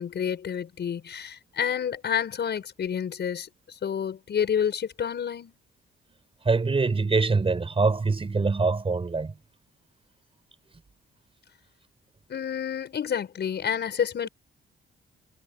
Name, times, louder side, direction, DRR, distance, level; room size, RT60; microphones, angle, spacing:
voice 1, 0.0-5.5 12.3-14.3, left 8 dB, 55° left, 5.9 m, -29 dB
voice 2, 6.4-9.3, right 4 dB, 25° right, 4.7 m, -24 dB
cardioid pair, 115°, 21 cm